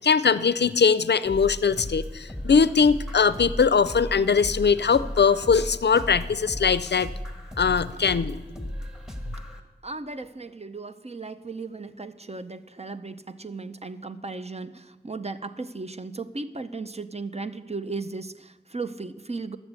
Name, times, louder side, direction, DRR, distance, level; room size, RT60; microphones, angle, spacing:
voice 1, 0.0-7.1 7.6-8.7, left 5 dB, 75° left, 16 dB, 0.4 m, -21 dB
sound 1, 1.2-9.6, equal, 5° right, 1.5 m, -36 dB
voice 2, 9.8-19.6, right 3 dB, 35° right, 10 dB, 0.6 m, -36 dB
11.5 x 7.1 x 8.1 m, 1.2 s
wide cardioid pair, 40°, 18 cm